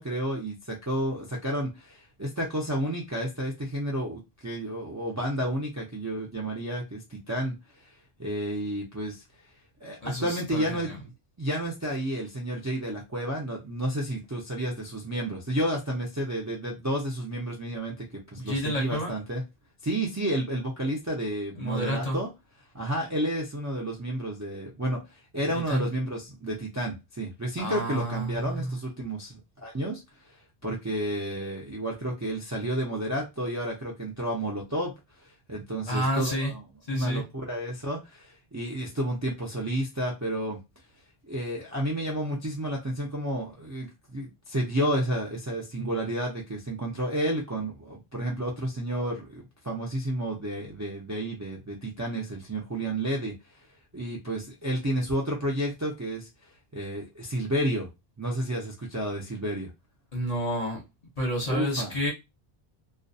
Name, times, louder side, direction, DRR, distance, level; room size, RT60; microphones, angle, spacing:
voice 1, 0.0-7.5 8.2-9.2 9.8-10.9 11.4-18.1 18.3-19.4 19.8-22.3 22.7-25.0 25.3-30.0 30.6-34.9 35.2-36.6 36.9-40.6 41.2-53.3 53.9-56.3 56.7-57.9 58.2-59.7 61.5-61.9, right 1 dB, 25° right, 0.4 m, -31 dB
voice 2, 10.0-11.0 18.4-19.1 21.6-22.2 25.5-25.9 27.6-28.8 35.9-36.5 36.9-37.2 60.1-60.8 61.2-62.1, equal, 40° left, 0.8 m, -30 dB
2.3 x 2.2 x 2.6 m
omnidirectional pair, 1.1 m